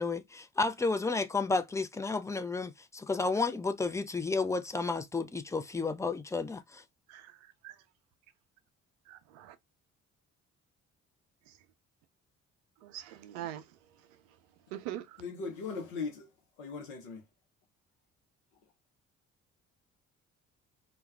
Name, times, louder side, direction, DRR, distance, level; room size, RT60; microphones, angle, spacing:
voice 1, 0.0-6.8, left 3 dB, 10° left, 0.4 m, -32 dB
voice 2, 7.1-7.8 9.1-9.6 11.5-11.7 12.8-14.4 14.7-15.2, right 12 dB, 80° right, 0.5 m, -44 dB
voice 3, 15.2-16.3 16.6-17.2, left 4 dB, 75° left, 0.7 m, -38 dB
2.2 x 2.1 x 3.2 m
hypercardioid pair, 45°, 39 cm